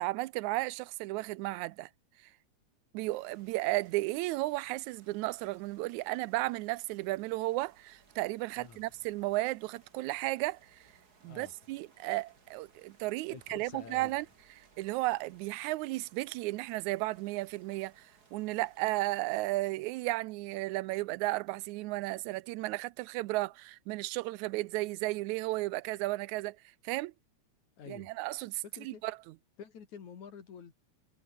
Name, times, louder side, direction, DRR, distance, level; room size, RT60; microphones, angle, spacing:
voice 1, 0.0-1.9 2.9-10.8 11.2-14.3 14.8-26.6 26.8-27.1 27.9-29.2, right 19 dB, 85° right, 1.9 m, -34 dB
sound 1, 3.0-19.6, right 4 dB, 35° right, 2.9 m, -64 dB
voice 2, 11.2-11.5 13.3-14.2 27.8-28.2 28.6-29.0 29.6-30.7, left 7 dB, 75° left, 4.2 m, -48 dB
omnidirectional pair, 3.4 m